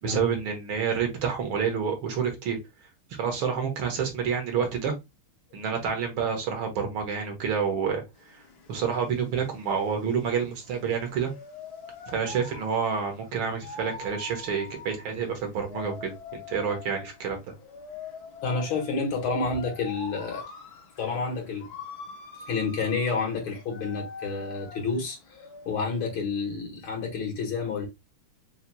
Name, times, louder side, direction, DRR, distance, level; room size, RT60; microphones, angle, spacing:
voice 1, 0.0-2.6 3.2-4.9 5.5-8.0 8.7-11.3 12.1-17.4, right 6 dB, 75° right, 2.0 m, -28 dB
sound 1, 8.2-26.2, left 5 dB, 55° left, 1.4 m, -44 dB
voice 2, 18.4-20.4 21.0-21.7 22.5-25.2 25.7-27.9, left 4 dB, 80° left, 2.3 m, -29 dB
5.5 x 2.9 x 2.2 m
omnidirectional pair, 2.3 m